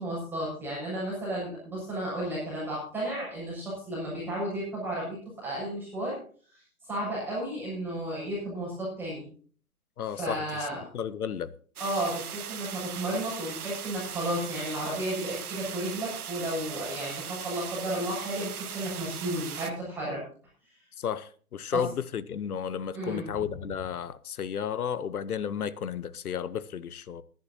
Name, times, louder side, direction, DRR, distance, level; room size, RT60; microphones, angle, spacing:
voice 1, 0.0-6.2 6.5-9.2 10.1-10.8 11.8-20.2 21.7-21.8 22.9-23.2, right 1 dB, 5° right, 6.8 m, -33 dB
voice 2, 10.0-10.7 10.9-11.5 21.0-27.2, left 8 dB, 85° left, 1.0 m, -33 dB
sound 1, 11.8-19.7, right 8 dB, 85° right, 1.3 m, -39 dB
20.0 x 10.5 x 2.8 m
hypercardioid pair, 155°, 43 cm